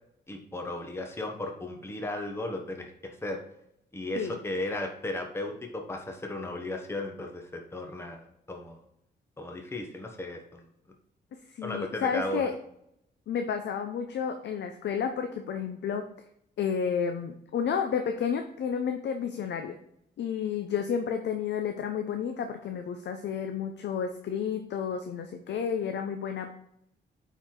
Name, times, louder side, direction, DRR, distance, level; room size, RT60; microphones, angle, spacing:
voice 1, 0.3-3.4 3.9-8.2 8.5-8.8 9.4-10.6 11.6-12.5, left 1 dB, 15° left, 3 dB, 1.0 m, -35 dB
voice 2, 11.5-12.5 13.3-16.0 16.6-19.8 20.2-26.5, left 7 dB, 80° left, 6 dB, 0.7 m, -31 dB
9.0 x 4.6 x 3.8 m, 0.76 s
cardioid pair, 125°, 18 cm